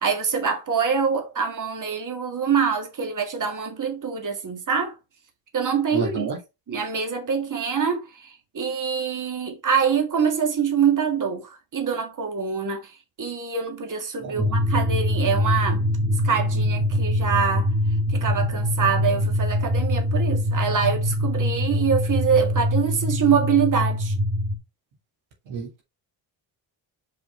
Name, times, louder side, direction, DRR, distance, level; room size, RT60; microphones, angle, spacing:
voice 1, 0.0-5.0 5.5-6.3 6.7-15.8 16.2-17.7 18.1-24.1, right 6 dB, 40° right, 1.8 m, -25 dB
voice 2, 5.9-6.4 14.2-14.6 25.5-25.8, right 5 dB, 90° right, 2.3 m, -30 dB
sound 1, 14.4-24.6, left 1 dB, ahead, 1.4 m, -23 dB
5.1 x 4.7 x 4.3 m
supercardioid pair, 55°, 46 cm